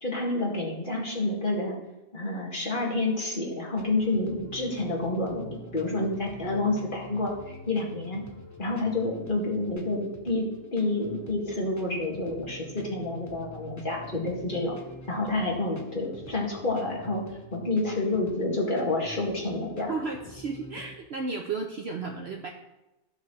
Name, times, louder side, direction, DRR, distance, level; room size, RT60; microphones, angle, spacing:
voice 1, 0.0-1.8 2.1-8.2 8.6-14.8 15.1-17.2 17.5-19.9, left 2 dB, 35° left, -2 dB, 2.0 m, -29 dB
sound 1, 3.8-21.0, right 1 dB, 15° left, 0.8 m, -47 dB
voice 2, 19.9-22.5, right 4 dB, 55° right, 2 dB, 0.8 m, -33 dB
14.5 x 5.6 x 3.1 m, 1.0 s
omnidirectional pair, 1.5 m